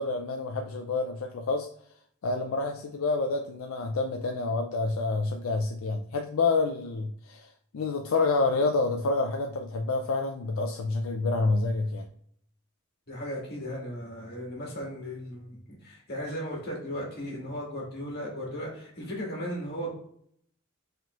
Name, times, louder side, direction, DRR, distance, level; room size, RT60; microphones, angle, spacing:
voice 1, 0.0-1.7 2.2-12.1, left 3 dB, 75° left, 4 dB, 0.4 m, -28 dB
voice 2, 13.1-19.9, equal, 50° left, -3 dB, 1.9 m, -36 dB
5.0 x 3.7 x 2.5 m, 0.66 s
head